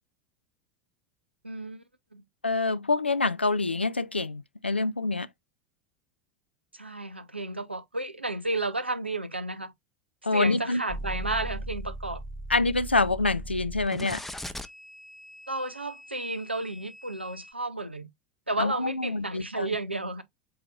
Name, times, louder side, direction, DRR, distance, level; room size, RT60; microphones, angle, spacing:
voice 1, 1.4-1.8 2.1-2.2 6.7-9.7 10.3-12.2 15.5-18.1 18.5-20.2, right 2 dB, 90° right, 0.6 m, -32 dB
voice 2, 2.4-5.3 10.2-10.8 12.5-14.2 18.6-19.7, left 3 dB, 85° left, 0.3 m, -26 dB
sound 1, 10.9-17.5, right 1 dB, 5° left, 0.6 m, -39 dB
7.7 x 2.8 x 2.4 m
figure-of-eight pair, 85°, 6 cm